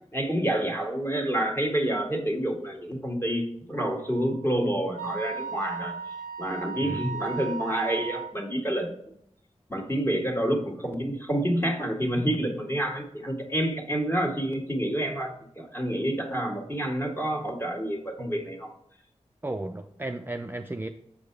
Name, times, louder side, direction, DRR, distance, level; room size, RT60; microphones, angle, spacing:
voice 1, 0.1-5.9 6.4-8.9 9.7-18.7, right 1 dB, 20° left, 1 dB, 1.8 m, -28 dB
Wind instrument woodwind instrument, 4.0-8.3, right 6 dB, 85° left, 1.6 m, -37 dB
voice 2, 19.4-20.9, right 2 dB, 20° right, 5 dB, 0.4 m, -34 dB
7.6 x 4.7 x 3.3 m, 0.71 s
cardioid pair, 50°, 12 cm